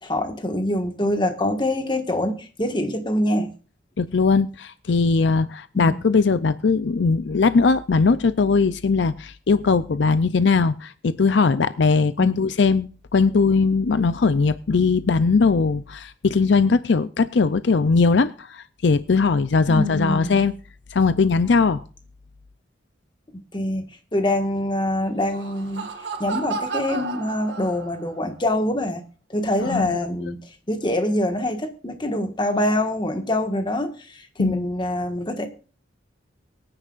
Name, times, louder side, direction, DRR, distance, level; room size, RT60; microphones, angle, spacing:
voice 1, 0.0-3.5 5.7-6.0 12.2-12.4 19.7-20.5 23.5-25.9 26.2-29.0 29.3-30.4 30.7-35.5, left 1 dB, 25° left, 1.6 m, -25 dB
voice 2, 4.0-20.5 20.9-21.8 29.6-29.9 34.4-34.6, left 4 dB, 65° left, 0.5 m, -20 dB
Laughter, 25.0-28.2, right 4 dB, 65° right, 2.3 m, -32 dB
23.5 x 10.0 x 2.5 m
head